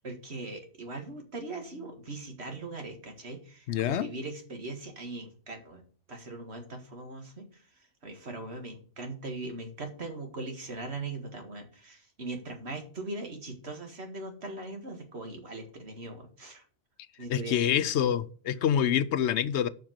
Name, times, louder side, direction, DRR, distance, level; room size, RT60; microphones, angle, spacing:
voice 1, 0.0-5.8 6.1-16.7 17.2-18.1, right 2 dB, 65° right, 2.1 m, -40 dB
voice 2, 3.7-4.1 17.3-19.7, left 9 dB, 75° left, 0.9 m, -26 dB
7.5 x 5.7 x 7.6 m
omnidirectional pair, 1.2 m